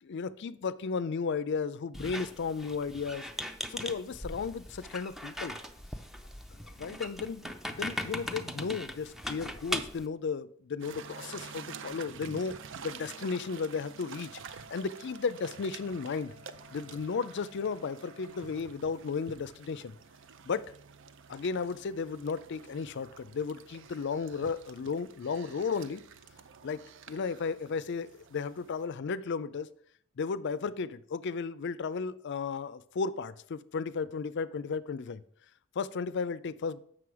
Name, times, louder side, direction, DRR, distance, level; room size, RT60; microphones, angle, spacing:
voice 1, 0.0-3.3 3.7-5.6 6.8-12.6 12.8-16.3 16.7-19.9 20.4-20.7 21.3-26.0 26.6-29.7 30.2-35.2 35.8-36.8, left 5 dB, 60° left, 16 dB, 0.4 m, -34 dB
Squeak, 1.9-10.1, equal, ahead, 0.6 m, -39 dB
sound 1, 10.8-28.9, right 6 dB, 65° right, 0.5 m, -49 dB
Wind instrument woodwind instrument, 14.1-18.7, left 3 dB, 35° right, 1.0 m, -57 dB
7.8 x 6.2 x 4.8 m, 0.64 s
head